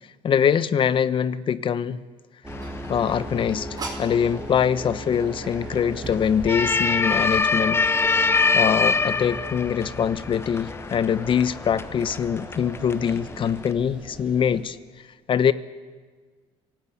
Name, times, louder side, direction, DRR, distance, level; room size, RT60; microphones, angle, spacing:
voice 1, 0.2-2.0 2.9-3.7 4.0-7.8 8.3-14.8 15.3-15.5, left 8 dB, 45° left, 15 dB, 1.0 m, -23 dB
sound 1, 2.4-14.6, right 1 dB, 10° right, 4.2 m, -39 dB
sound 2, 2.5-13.7, left 4 dB, 20° left, 0.7 m, -26 dB
sound 3, 2.6-4.2 5.1-5.2 5.8-7.5, right 3 dB, 30° right, 5.0 m, -39 dB
27.0 x 18.0 x 8.4 m, 1.5 s
cardioid pair, 110°, 13 cm